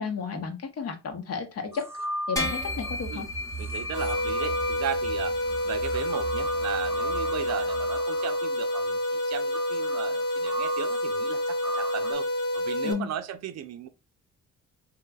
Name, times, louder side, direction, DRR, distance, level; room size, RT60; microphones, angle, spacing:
voice 1, 0.0-1.9 2.3-3.3 12.8-13.1, left 5 dB, 55° left, 0.9 m, -32 dB
sound 1, 1.7-3.0 3.5-12.1, right 1 dB, 10° right, 0.4 m, -38 dB
sound 2, 2.4-8.0, left 1 dB, 10° left, 0.9 m, -35 dB
voice 2, 3.6-13.9, right 10 dB, 60° right, 0.5 m, -36 dB
sound 3, 3.9-12.9, left 1 dB, 75° left, 1.6 m, -28 dB
3.2 x 3.0 x 2.3 m
cardioid pair, 90°, 30 cm